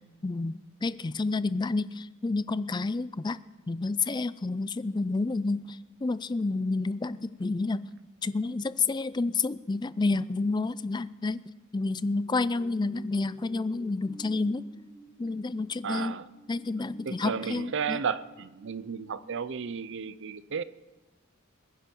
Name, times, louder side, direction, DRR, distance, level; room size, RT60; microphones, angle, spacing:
voice 1, 0.2-3.4 3.7-7.9 8.2-14.7 15.2-16.2 16.5-18.0, left 3 dB, 20° left, 0.4 m, -30 dB
sound 1, 12.2-19.8, right 2 dB, 10° right, 4.3 m, -54 dB
voice 2, 15.8-16.3 17.1-20.6, right 6 dB, 60° right, 0.6 m, -33 dB
22.0 x 10.5 x 4.5 m
head